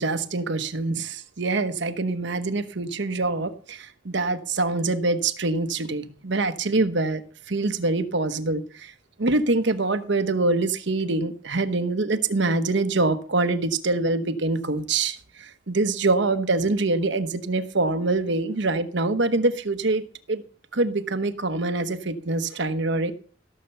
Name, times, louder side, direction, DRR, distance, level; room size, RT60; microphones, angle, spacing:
voice 1, 0.0-7.2 7.5-8.9 9.2-20.4 20.7-23.1, right 3 dB, 70° right, 9 dB, 1.1 m, -25 dB
16.5 x 6.6 x 6.9 m, 0.43 s
head